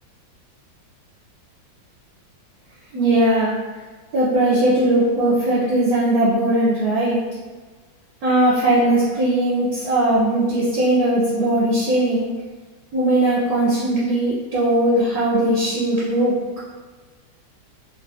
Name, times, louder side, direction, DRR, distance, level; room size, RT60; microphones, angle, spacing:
voice 1, 2.9-3.6 4.1-7.3 8.2-12.3 12.9-16.4, right 1 dB, 70° right, -6 dB, 1.0 m, -19 dB
3.4 x 2.9 x 2.6 m, 1.4 s
omnidirectional pair, 1.9 m